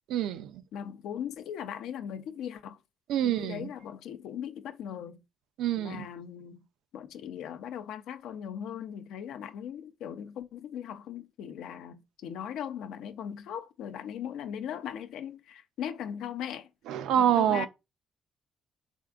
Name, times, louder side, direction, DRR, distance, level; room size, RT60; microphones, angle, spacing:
voice 1, 0.1-0.6 3.1-3.7 5.6-6.1 16.9-17.7, right 10 dB, 85° right, 0.3 m, -26 dB
voice 2, 0.7-2.8 3.2-5.2 5.8-6.7 6.9-16.7 17.2-17.7, left 9 dB, 85° left, 0.4 m, -39 dB
3.6 x 3.5 x 2.3 m
cardioid pair, 90°, 0 cm